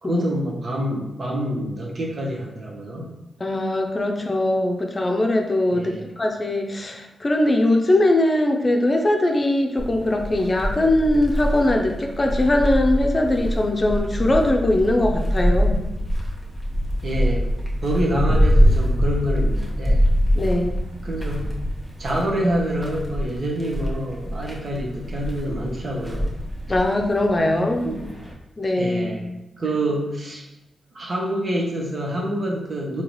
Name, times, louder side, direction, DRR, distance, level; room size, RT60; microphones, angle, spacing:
voice 1, 0.0-3.1 5.7-6.0 17.0-17.5 17.8-20.0 21.0-21.6 22.0-26.3 27.8-28.1 28.8-29.3 29.6-30.4 30.9-33.0, right 1 dB, 55° right, -2 dB, 1.0 m, -26 dB
voice 2, 3.4-15.8 20.3-20.8 26.7-27.9 28.6-29.4, left 1 dB, 35° left, 2 dB, 0.6 m, -21 dB
sound 1, 9.8-28.3, equal, 10° right, 1.1 m, -24 dB
3.8 x 2.9 x 3.0 m, 0.91 s
supercardioid pair, 50°, 0 cm